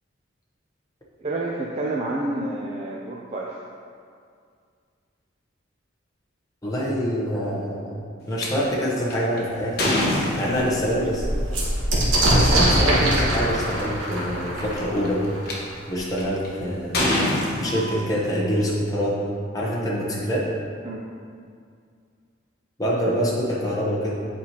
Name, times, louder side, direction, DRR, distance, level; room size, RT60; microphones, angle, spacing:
voice 1, 1.2-3.6 20.8-21.0, right 2 dB, 35° right, -4 dB, 0.4 m, -29 dB
voice 2, 6.6-8.0 8.3-9.9 10.4-11.3 12.3-15.3 15.9-19.2 19.5-20.5 22.8-24.1, equal, 20° left, -5 dB, 0.9 m, -25 dB
sound 1, 8.4-8.5 9.1-11.0 12.2-12.4 13.1-13.2 13.4-13.8 14.5-15.5 16.2-16.5 16.9-18.4, left 1 dB, 50° left, 1.0 m, -25 dB
sound 2, 9.5-9.6 10.0-10.1 10.4-16.0 16.9-17.0 17.3-17.9, right 1 dB, 90° right, 1.3 m, -23 dB
8.3 x 4.5 x 2.9 m, 2.2 s
head